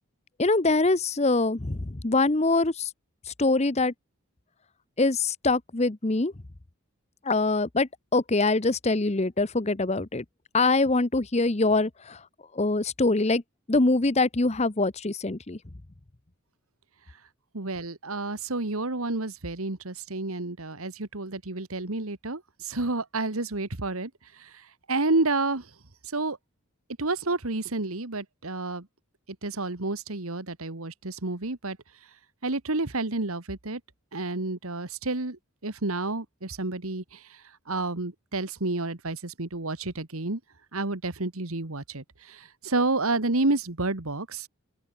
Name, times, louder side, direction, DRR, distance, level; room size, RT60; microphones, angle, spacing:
voice 1, 0.4-2.9 3.3-3.9 5.0-6.3 7.2-10.2 10.5-12.2 12.5-13.4 13.7-15.6, left 3 dB, 30° left, 0.8 m, -24 dB
voice 2, 17.5-24.1 24.4-24.5 24.9-25.7 26.0-26.4 27.0-28.9 29.4-31.8 32.4-33.8 34.1-37.2 37.7-40.4 40.7-44.5, right 2 dB, 75° right, 1.8 m, -30 dB
open air
head